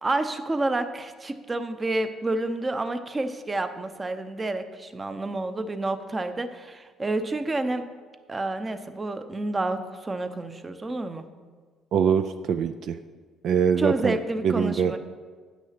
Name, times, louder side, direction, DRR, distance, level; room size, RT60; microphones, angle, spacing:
voice 1, 0.0-7.9 8.3-11.3 13.8-15.0, right 2 dB, 25° right, 9 dB, 0.8 m, -29 dB
voice 2, 11.9-13.0 13.4-14.2 14.4-14.9, right 7 dB, 65° right, 9 dB, 0.4 m, -23 dB
9.5 x 6.1 x 5.8 m, 1.5 s
supercardioid pair, 75°, 0 cm